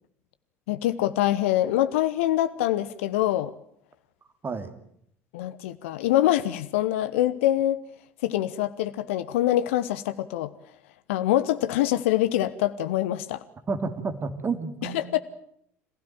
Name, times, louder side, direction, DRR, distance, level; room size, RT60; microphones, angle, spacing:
voice 1, 0.7-3.5 5.3-7.8 8.2-10.5 11.1-13.4 14.8-15.2, left 13 dB, 65° left, 13 dB, 0.9 m, -24 dB
voice 2, 13.7-15.0, right 4 dB, 30° right, 10 dB, 2.7 m, -30 dB
26.5 x 16.0 x 9.0 m, 0.70 s
figure-of-eight pair, 60°, 8 cm